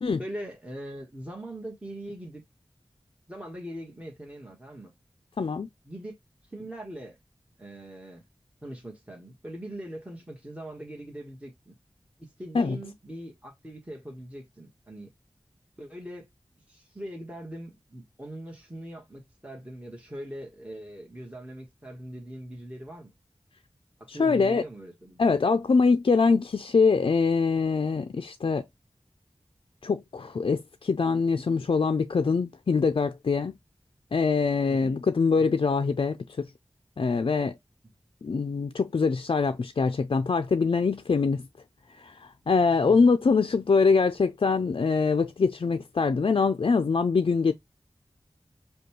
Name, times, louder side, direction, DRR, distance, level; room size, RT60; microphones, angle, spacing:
voice 1, 0.2-2.4 3.3-4.9 5.8-6.1 6.4-7.2 7.6-8.2 8.6-11.7 12.2-15.1 15.8-16.3 16.7-23.1 24.0-25.2 34.7-35.0 35.4-35.6 42.7-43.0, right 1 dB, 15° right, 1.3 m, -41 dB
voice 2, 5.4-5.7 12.5-12.8 24.1-24.6 25.2-28.6 29.8-33.5 34.1-36.5 37.0-37.6 38.2-41.4 41.9-47.5, left 4 dB, 60° left, 0.4 m, -24 dB
5.1 x 2.3 x 2.9 m
wide cardioid pair, 50°, 10 cm